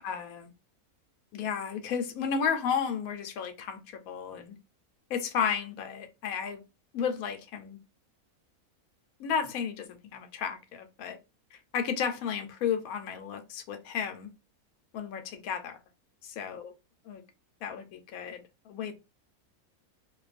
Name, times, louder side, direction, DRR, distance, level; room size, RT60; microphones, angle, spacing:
voice 1, 0.0-0.5 1.3-3.8 4.1-4.6 5.1-6.6 6.9-7.8 9.2-11.2 11.5-14.3 14.9-15.8 16.4-16.7 17.0-17.2 17.6-18.9, left 7 dB, 75° left, 1.0 m, -33 dB
2.5 x 2.3 x 2.4 m
omnidirectional pair, 1.6 m